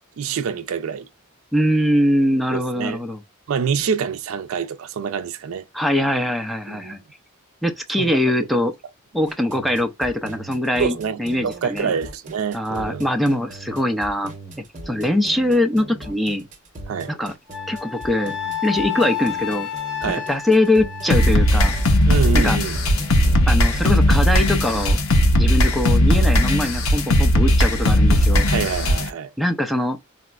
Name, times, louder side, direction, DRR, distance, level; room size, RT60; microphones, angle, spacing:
voice 1, 0.2-1.1 2.5-3.0 3.5-5.6 6.7-7.0 8.0-8.1 10.8-13.0 16.9-17.1 20.0-20.3 22.1-22.8 28.5-29.3, right 6 dB, 80° right, 0.4 m, -26 dB
voice 2, 1.5-3.2 5.7-7.0 7.6-8.7 9.1-11.9 12.5-14.3 14.6-16.5 17.1-17.3 17.7-18.4 18.6-19.7 20.1-21.8 22.3-22.6 23.5-25.0 25.4-28.5 29.4-30.0, left 1 dB, ahead, 0.4 m, -22 dB
sound 1, 9.3-24.8, right 2 dB, 40° right, 0.8 m, -39 dB
Wind instrument woodwind instrument, 17.5-21.9, left 10 dB, 60° left, 1.2 m, -30 dB
sound 2, 21.1-29.1, left 1 dB, 85° left, 0.7 m, -17 dB
4.0 x 2.0 x 2.2 m
head